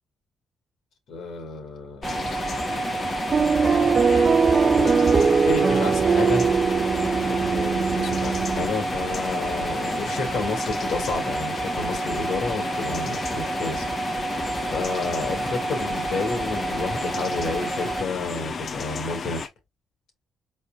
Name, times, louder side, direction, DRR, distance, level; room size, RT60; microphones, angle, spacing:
voice 1, 1.1-2.4 3.3-6.5 7.2-19.5, left 3 dB, 70° left, 2.3 m, -31 dB
sound 1, 2.0-19.5, left 5 dB, 55° left, 0.8 m, -33 dB
sound 2, 2.0-18.0, right 3 dB, 20° right, 1.4 m, -30 dB
sound 3, 3.3-8.7, right 5 dB, 50° right, 0.4 m, -21 dB
4.5 x 4.4 x 2.5 m
supercardioid pair, 60°, 0 cm